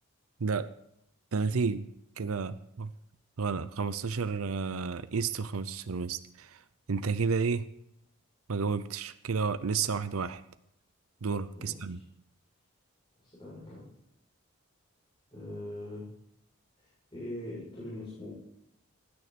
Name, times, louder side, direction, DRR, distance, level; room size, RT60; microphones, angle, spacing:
voice 1, 0.4-0.7 1.3-1.9 2.2-2.9 3.4-7.7 8.5-10.4 11.2-12.0, right 5 dB, 85° right, 13 dB, 0.6 m, -31 dB
voice 2, 11.5-12.0 13.2-13.9 15.3-16.1 16.8-18.3, left 1 dB, 25° left, -9 dB, 7.0 m, -42 dB
19.0 x 9.7 x 4.2 m, 0.78 s
head